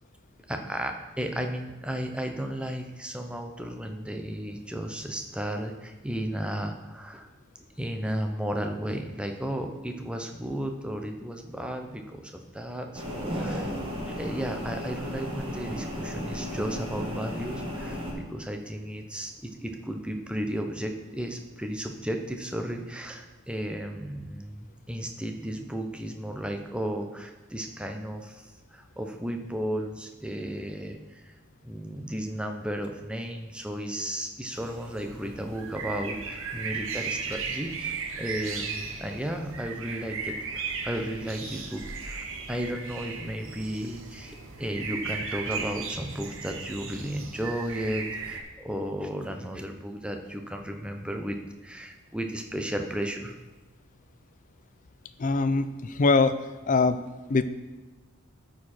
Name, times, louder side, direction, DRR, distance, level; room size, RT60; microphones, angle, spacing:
voice 1, 0.5-7.3 7.8-13.7 14.0-31.4 31.6-53.4, equal, 5° right, 4 dB, 0.7 m, -34 dB
sound 1, 12.9-18.1, equal, 25° right, 1.6 m, -34 dB
sound 2, 34.5-48.4, right 5 dB, 65° right, 1.0 m, -36 dB
voice 2, 55.2-55.7 56.0-56.3 56.7-57.0 57.3-57.4, left 4 dB, 40° left, 12 dB, 0.4 m, -21 dB
13.0 x 4.8 x 4.4 m, 1.2 s
head